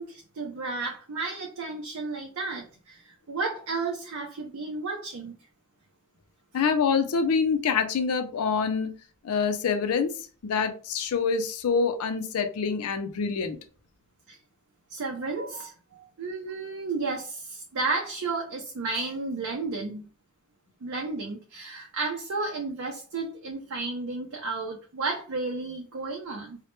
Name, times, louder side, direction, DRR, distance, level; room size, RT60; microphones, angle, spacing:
voice 1, 0.0-5.4 14.3-14.4 14.9-20.1 20.8-26.6, right 3 dB, 65° right, 1 dB, 0.4 m, -33 dB
voice 2, 6.5-8.9 9.2-13.6, left 5 dB, 75° left, 9 dB, 0.4 m, -26 dB
2.1 x 2.1 x 2.9 m, 0.37 s
head